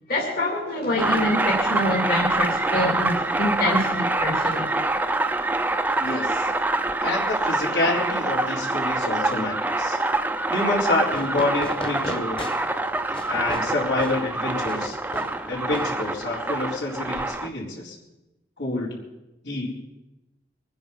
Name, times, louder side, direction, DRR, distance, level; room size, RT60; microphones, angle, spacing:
voice 1, 0.1-4.7, left 1 dB, 55° left, -2 dB, 2.6 m, -25 dB
sound 1, 1.0-17.5, right 2 dB, 10° right, 0.6 m, -25 dB
voice 2, 6.0-6.4 7.0-10.0 10.5-12.4 13.3-15.0 15.5-18.0 18.6-18.9 19.4-19.8, left 2 dB, 85° left, -4 dB, 4.3 m, -27 dB
Fireworks, 11.1-16.6, left 1 dB, 30° left, 1.3 m, -37 dB
24.0 x 9.9 x 5.5 m, 1.0 s
head